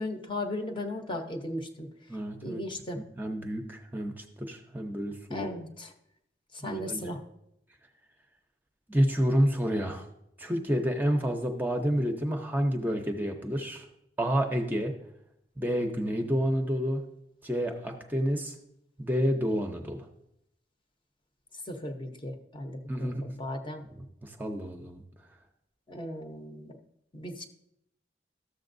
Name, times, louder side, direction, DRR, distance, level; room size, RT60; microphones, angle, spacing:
voice 1, 0.0-1.9 2.4-3.0 5.3-5.9 6.5-7.2 21.7-23.8 25.9-26.8 27.1-27.4, left 1 dB, 30° left, 5 dB, 0.7 m, -36 dB
voice 2, 2.1-2.6 3.0-5.5 6.6-7.0 8.9-10.1 10.4-13.9 14.2-14.9 15.6-17.0 17.4-18.5 19.0-20.1 22.9-23.4 24.2-25.0, equal, 10° right, 3 dB, 0.6 m, -29 dB
13.0 x 7.0 x 2.6 m, 0.79 s
head